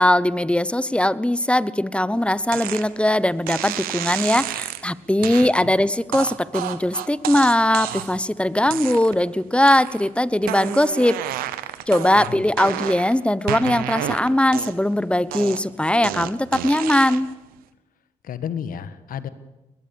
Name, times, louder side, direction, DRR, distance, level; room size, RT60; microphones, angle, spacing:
voice 1, 0.0-11.2 11.9-17.3, left 1 dB, 5° left, 17 dB, 1.1 m, -20 dB
sound 1, 2.5-2.9 3.5-4.8 5.2-5.5 6.1-8.2 8.7-9.3 9.7-10.1 10.4-13.1 13.5-14.9 15.3-17.3, right 13 dB, 85° right, 1.1 m, -30 dB
voice 2, 5.2-5.7 12.1-12.5 18.2-19.3, left 8 dB, 70° left, 13 dB, 1.5 m, -33 dB
21.0 x 21.0 x 7.2 m, 1.1 s
supercardioid pair, 45°, 15 cm